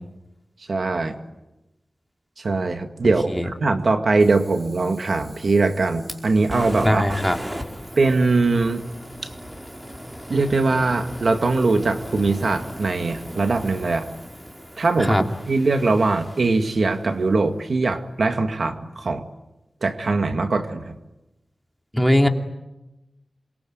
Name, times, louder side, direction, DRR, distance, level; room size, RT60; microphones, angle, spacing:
voice 1, 0.7-1.2 2.4-7.2 8.0-8.8 9.2-9.3 10.3-14.1 14.8-19.3 19.8-20.9, right 3 dB, 75° right, 7 dB, 2.0 m, -21 dB
Fire, 4.2-17.3, equal, 15° right, 5.0 m, -38 dB
voice 2, 6.8-7.4 15.0-15.2 21.9-22.3, left 1 dB, ahead, 4 dB, 2.7 m, -19 dB
28.0 x 23.0 x 9.3 m, 1.0 s
wide cardioid pair, 70°, 0 cm